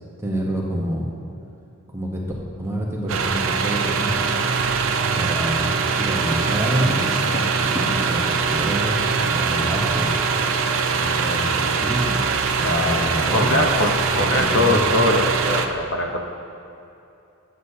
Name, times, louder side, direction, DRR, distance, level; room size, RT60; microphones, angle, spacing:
voice 1, 0.2-1.1 1.9-2.2 2.6-4.4 5.1-7.0 7.9-10.1 11.0-12.2 12.6-13.6 14.3-14.9, equal, 10° right, -3 dB, 0.9 m, -27 dB
sound 1, 3.1-15.7, right 5 dB, 65° right, 0.5 m, -22 dB
sound 2, 6.1-14.8, left 1 dB, 15° left, 1.2 m, -36 dB
voice 2, 12.6-13.0 13.3-16.2, left 2 dB, 55° left, 2 dB, 0.7 m, -22 dB
9.6 x 8.0 x 2.7 m, 2.7 s
head